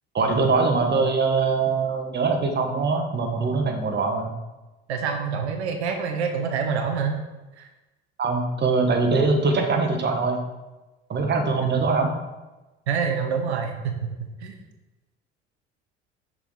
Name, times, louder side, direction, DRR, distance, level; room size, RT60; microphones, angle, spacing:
voice 1, 0.1-4.3 8.2-10.4 11.1-12.1, right 4 dB, 30° right, 3 dB, 1.2 m, -22 dB
voice 2, 4.9-7.1 7.6-7.7 11.8-11.9 12.9-14.6, right 6 dB, 75° right, 5 dB, 0.7 m, -27 dB
5.8 x 4.5 x 3.9 m, 1.1 s
figure-of-eight pair, 55°, 33 cm